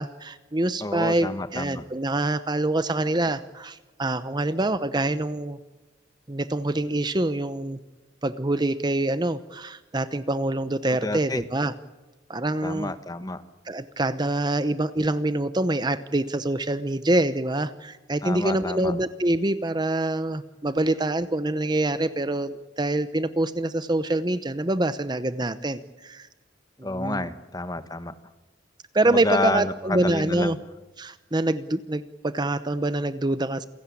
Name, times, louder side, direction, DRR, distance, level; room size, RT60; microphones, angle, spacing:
voice 1, 0.0-5.6 6.3-7.8 8.2-11.7 12.3-12.9 13.6-26.3 26.8-27.3 28.9-30.6 31.0-33.7, right 2 dB, 20° right, 12 dB, 0.8 m, -25 dB
voice 2, 0.8-1.8 11.0-11.4 12.6-13.4 18.2-18.9 26.8-28.1 29.1-30.5, left 2 dB, 20° left, 11 dB, 1.2 m, -29 dB
28.5 x 17.0 x 8.5 m, 1.1 s
head